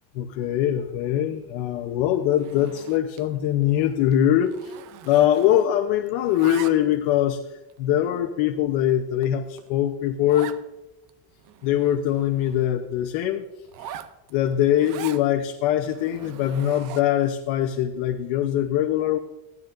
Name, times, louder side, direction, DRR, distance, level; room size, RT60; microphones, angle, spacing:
voice 1, 0.1-4.7 5.0-7.4 7.8-10.6 11.6-13.4 14.3-19.2, left 11 dB, 90° left, 4 dB, 1.0 m, -22 dB
Zipper (clothing), 2.3-3.3 3.6-3.9 4.1-5.8 6.1-7.1 7.7-7.8 8.4-8.5 8.9-9.0 9.2-9.3 9.6-9.7 10.3-10.6 11.1-11.2 11.4-12.7 13.6-15.3 15.8-17.2, right 10 dB, 45° right, 0.6 m, -41 dB
16.0 x 12.0 x 2.6 m, 0.97 s
cardioid pair, 180°, 44 cm